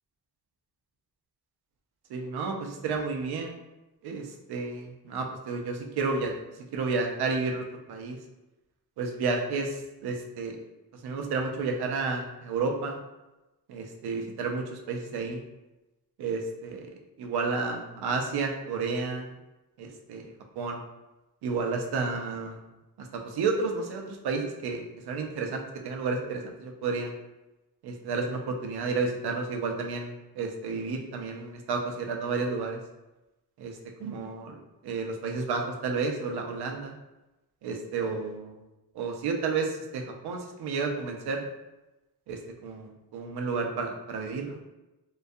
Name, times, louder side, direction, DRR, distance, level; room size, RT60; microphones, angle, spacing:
voice 1, 2.1-3.6 4.0-6.3 6.7-8.2 9.0-10.6 11.0-13.0 13.7-15.4 16.2-16.9 17.2-19.3 19.8-20.3 20.6-20.8 21.4-22.6 23.0-27.1 27.8-32.8 33.6-36.9 37.6-38.6 38.9-41.5 42.3-44.6, right 4 dB, 90° right, 2 dB, 0.5 m, -31 dB
2.2 x 2.2 x 2.6 m, 1.0 s
wide cardioid pair, 150°, 37 cm